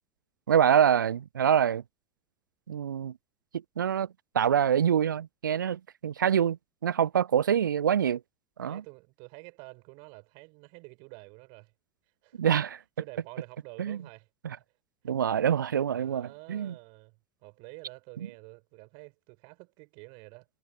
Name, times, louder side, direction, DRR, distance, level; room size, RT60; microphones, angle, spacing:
voice 1, 0.5-1.8 2.7-3.1 3.8-4.1 4.3-6.6 6.8-8.2 8.6-8.8 12.4-12.8 13.8-14.0 14.4-14.6 15.0-16.7, right 8 dB, 75° right, 0.4 m, -25 dB
voice 2, 8.7-11.7 12.2-12.4 13.0-14.3 15.0-15.1 15.9-20.5, right 33 dB, 50° right, 7.3 m, -49 dB
figure-of-eight pair, 75°, 10 cm